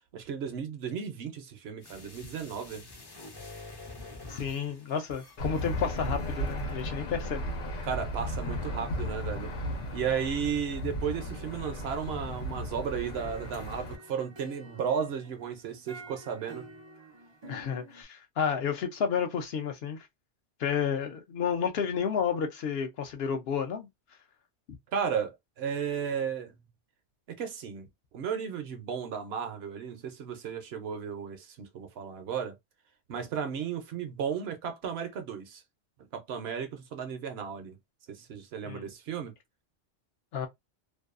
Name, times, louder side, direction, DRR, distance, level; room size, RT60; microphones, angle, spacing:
voice 1, 0.1-2.9 7.8-9.5 9.9-16.8 24.9-26.6 27.3-32.6 33.1-35.6 36.1-37.8 38.1-39.3, right 7 dB, 65° right, 0.8 m, -34 dB
sound 1, 1.8-6.9 7.2-7.3, left 3 dB, 30° left, 0.4 m, -48 dB
voice 2, 4.3-7.4 17.5-20.1 20.6-23.9 38.6-38.9 40.3-40.5, left 7 dB, 65° left, 0.7 m, -31 dB
Aircraft / Engine, 5.4-14.0, equal, 85° left, 1.1 m, -35 dB
sound 2, 13.0-18.0, right 1 dB, 35° right, 0.4 m, -50 dB
2.6 x 2.2 x 2.4 m
omnidirectional pair, 1.2 m